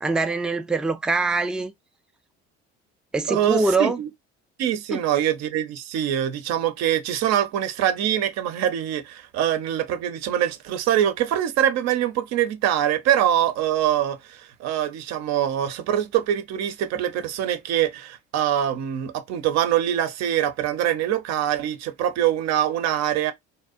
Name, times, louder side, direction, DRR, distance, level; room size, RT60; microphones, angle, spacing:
voice 1, 0.0-1.7 3.1-4.0 4.9-5.0, right 3 dB, 5° right, 0.3 m, -23 dB
voice 2, 3.3-4.1 4.6-23.3, right 11 dB, 65° right, 0.6 m, -24 dB
2.6 x 2.1 x 2.4 m
supercardioid pair, 75°, 30 cm